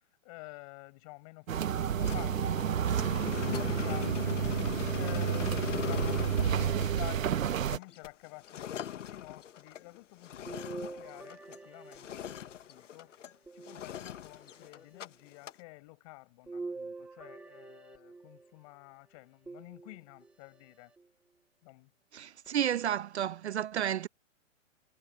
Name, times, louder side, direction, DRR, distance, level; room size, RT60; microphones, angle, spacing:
voice 1, 0.2-4.4 5.0-13.1 13.5-20.9 21.6-21.9, left 26 dB, 25° left, 6.6 m, -50 dB
sound 1, 1.5-7.8, right 9 dB, 85° right, 1.3 m, -30 dB
sound 2, 2.0-11.7 11.9-13.3 13.6-15.1 15.3-15.6, left 10 dB, 65° left, 1.5 m, -40 dB
sound 3, 10.5-12.7 13.5-14.5 16.5-18.5 19.5-20.3 21.0-21.1 22.5-22.6, right 3 dB, 5° right, 1.0 m, -45 dB
voice 2, 22.1-24.1, right 10 dB, 55° right, 0.8 m, -31 dB
hypercardioid pair, 170°, 39 cm